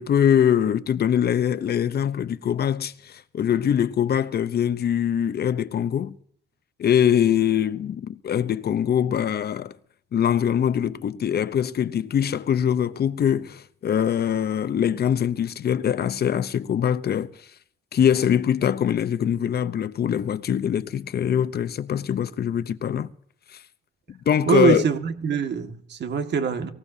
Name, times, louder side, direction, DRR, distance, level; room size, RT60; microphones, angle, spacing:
voice 1, 0.0-6.2 6.8-9.7 10.1-17.5 17.9-23.1 23.5-23.6 24.1-24.8, left 9 dB, 55° left, 0.8 m, -23 dB
voice 2, 24.5-26.7, right 7 dB, 60° right, 1.9 m, -23 dB
23.5 x 15.5 x 2.8 m
cardioid pair, 90°, 20 cm